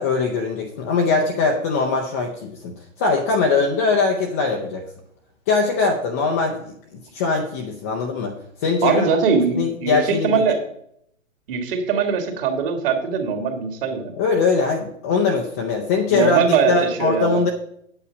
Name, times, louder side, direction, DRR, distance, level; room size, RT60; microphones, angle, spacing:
voice 1, 0.0-4.8 5.5-6.7 7.1-8.3 8.6-9.1 9.5-10.4 14.2-17.5, left 4 dB, 10° left, 0 dB, 0.4 m, -21 dB
voice 2, 8.8-10.6 11.5-14.1 16.1-17.4, right 6 dB, 40° right, 5 dB, 2.3 m, -21 dB
8.6 x 8.2 x 5.2 m, 0.70 s
hypercardioid pair, 130°, 40 cm